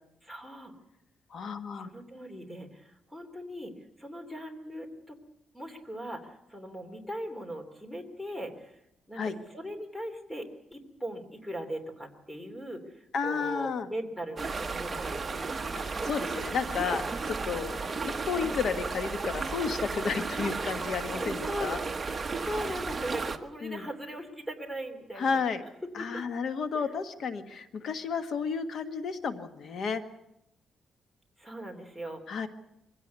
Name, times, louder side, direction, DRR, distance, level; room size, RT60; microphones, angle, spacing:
voice 1, 0.2-0.7 1.8-3.7 4.0-5.2 5.5-8.7 9.1-15.6 18.4-18.6 21.2-21.8 22.4-25.4 26.0-26.2 26.7-26.9 31.4-32.2, equal, 5° left, 7 dB, 3.1 m, -39 dB
voice 2, 1.3-1.9 9.1-9.3 13.1-13.9 15.8-17.7 18.0-21.8 23.6-23.8 25.2-25.6 25.9-30.0 32.3-32.5, left 5 dB, 60° left, 9 dB, 1.6 m, -32 dB
sound 1, 14.4-23.4, right 4 dB, 25° right, 1.2 m, -34 dB
22.5 x 16.5 x 8.2 m, 0.82 s
cardioid pair, 135°, 0 cm